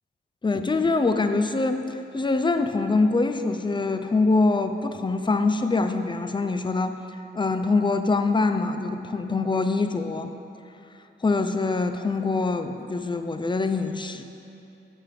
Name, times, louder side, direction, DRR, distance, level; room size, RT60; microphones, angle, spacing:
voice 1, 0.4-1.9 2.1-6.9 7.4-10.3 11.2-14.2, left 3 dB, 25° left, 8 dB, 0.5 m, -24 dB
7.6 x 5.8 x 5.0 m, 2.8 s
cardioid pair, 75°, 20 cm